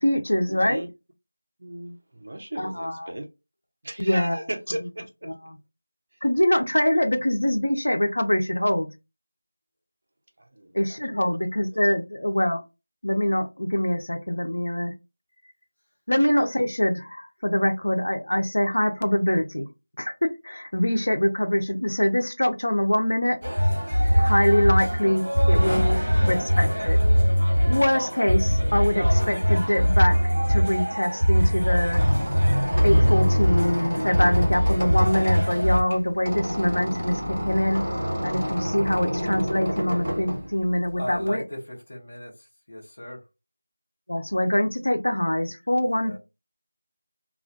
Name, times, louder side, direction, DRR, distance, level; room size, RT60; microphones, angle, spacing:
voice 1, 0.0-0.8 2.6-3.1 4.0-4.4 6.2-8.9 10.7-12.6 13.0-14.9 16.1-19.7 20.0-23.4 24.2-27.0 27.7-30.2 30.5-32.0 32.8-37.8 38.2-41.4 44.1-46.2, left 1 dB, 75° left, 0.6 m, -24 dB
voice 2, 1.6-3.3 3.8-5.3 10.4-11.0 11.3-11.4 11.7-11.9, right 1 dB, 30° right, 0.4 m, -36 dB
sound 1, 23.4-35.8, equal, 50° right, 0.8 m, -22 dB
sound 2, 25.4-27.5, equal, 5° left, 1.0 m, -36 dB
Squeak, 31.6-41.2, equal, 15° right, 0.8 m, -29 dB
voice 3, 41.0-43.2 45.8-46.2, equal, 30° left, 0.7 m, -38 dB
2.2 x 2.1 x 2.7 m
figure-of-eight pair, 180°, 0 cm